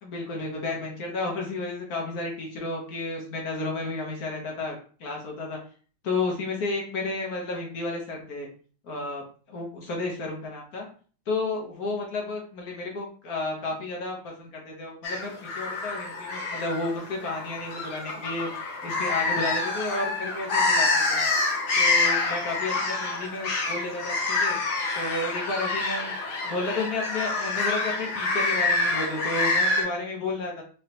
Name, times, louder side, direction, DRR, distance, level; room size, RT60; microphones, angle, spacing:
voice 1, 0.0-5.6 6.0-8.5 8.8-10.9 11.3-21.2 21.8-24.6 24.9-26.1 26.4-30.6, left 2 dB, 55° left, -1 dB, 1.3 m, -32 dB
sound 1, 15.0-29.8, left 3 dB, 80° left, 2.0 m, -27 dB
5.0 x 2.4 x 2.8 m, 0.42 s
omnidirectional pair, 2.3 m